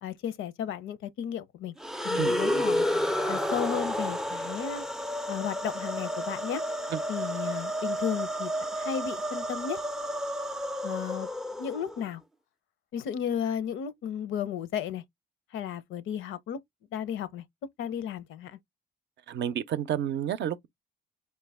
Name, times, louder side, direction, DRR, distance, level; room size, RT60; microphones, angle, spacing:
voice 1, 0.0-1.7 2.0-2.9 3.3-4.8 5.3-6.6 7.1-9.8 10.8-11.3 11.6-12.2 12.9-15.0 15.5-16.6 16.9-17.4 17.8-18.5, left 8 dB, 80° left, 0.6 m, -34 dB
sound 1, 1.8-12.0, equal, ahead, 0.3 m, -31 dB
voice 2, 19.3-20.7, right 10 dB, 65° right, 0.5 m, -30 dB
4.5 x 2.1 x 3.4 m
cardioid pair, 90°, 20 cm